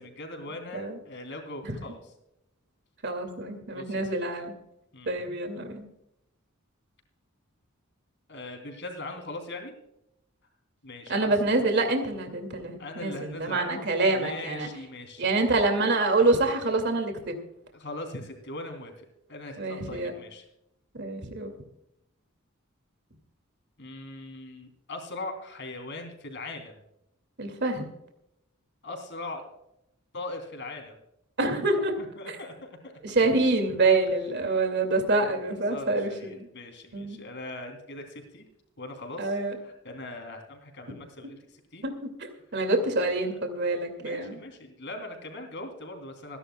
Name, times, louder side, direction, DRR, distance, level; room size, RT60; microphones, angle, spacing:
voice 1, 0.0-2.0 3.7-4.2 4.9-5.2 8.3-9.8 10.8-11.3 12.8-13.9 14.1-15.5 17.7-20.4 23.8-26.8 28.8-29.5 30.1-31.0 32.0-32.9 34.8-34.9 35.4-38.4 38.8-41.8 42.8-43.0 43.3-43.7 44.0-46.4, left 2 dB, 55° left, 4 dB, 3.2 m, -40 dB
voice 2, 3.0-4.5 5.1-5.9 11.1-14.7 15.2-17.3 19.6-20.1 20.9-21.5 27.4-27.8 31.4-31.9 33.0-36.5 36.9-37.2 39.2-39.6 41.8-44.4, right 2 dB, 55° right, 6 dB, 2.4 m, -26 dB
26.5 x 11.0 x 2.3 m, 0.82 s
head